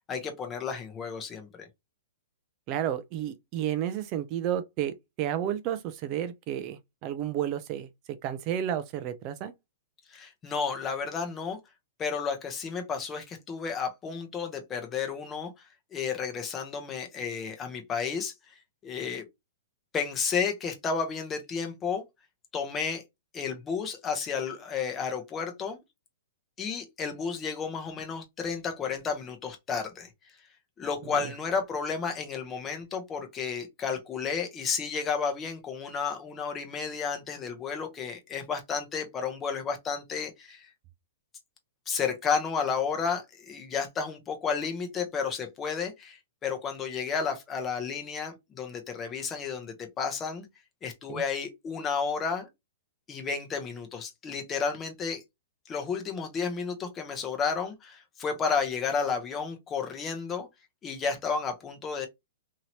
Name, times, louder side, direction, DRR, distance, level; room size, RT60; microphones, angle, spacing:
voice 1, 0.1-1.7 10.1-11.6 12.0-15.5 15.9-18.3 18.8-19.2 19.9-22.0 22.5-23.0 23.3-25.8 26.6-30.1 30.8-40.7 41.9-50.5 50.8-52.5 53.1-55.2 55.7-60.5 60.8-62.1, left 5 dB, 15° left, 0.7 m, -32 dB
voice 2, 2.7-7.9 8.2-9.5 31.1-31.3 51.1-51.2, right 10 dB, 30° right, 0.3 m, -31 dB
2.8 x 2.7 x 2.9 m
hypercardioid pair, 160°, 0 cm